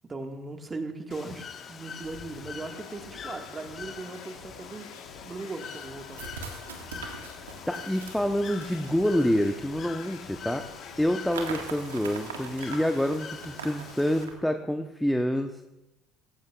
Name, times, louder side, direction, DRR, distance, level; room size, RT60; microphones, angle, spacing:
voice 1, 0.0-4.9 5.2-6.2, right 3 dB, 25° right, 5 dB, 1.7 m, -38 dB
Bird / Water, 1.1-14.3, left 6 dB, 40° left, 1.4 m, -44 dB
sound 1, 2.0-11.7, left 6 dB, 75° left, 1.8 m, -48 dB
sound 2, 6.1-10.0 11.3-14.4, right 5 dB, 85° right, 1.7 m, -42 dB
voice 2, 7.7-10.7 11.0-15.6, equal, 5° left, 5 dB, 0.9 m, -27 dB
17.5 x 15.5 x 2.4 m, 0.97 s
hypercardioid pair, 60°, 0 cm